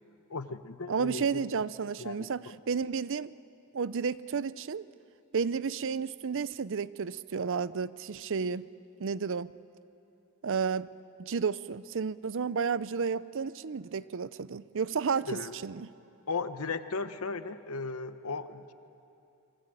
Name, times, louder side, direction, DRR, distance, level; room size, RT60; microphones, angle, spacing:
voice 1, 0.3-1.4 2.0-2.6 15.2-15.6 16.3-18.7, left 4 dB, 75° left, 11 dB, 1.1 m, -36 dB
voice 2, 0.9-3.3 3.7-4.8 5.3-8.7 9.0-9.5 10.4-10.9 11.2-15.3 15.6-15.9, right 5 dB, 60° right, 18 dB, 0.6 m, -32 dB
29.0 x 22.5 x 9.0 m, 2.8 s
head